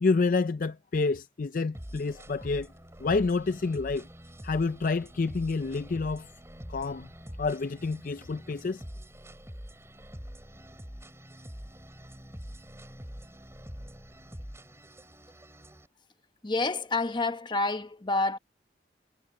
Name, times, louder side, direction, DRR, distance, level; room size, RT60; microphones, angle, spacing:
voice 1, 0.0-2.7 3.0-4.1 4.4-6.3 6.7-7.1 7.4-8.8, left 4 dB, 50° left, 0.4 m, -28 dB
sound 1, 1.7-15.9, equal, 15° right, 4.9 m, -45 dB
voice 2, 16.4-18.4, left 3 dB, 25° left, 0.9 m, -28 dB
head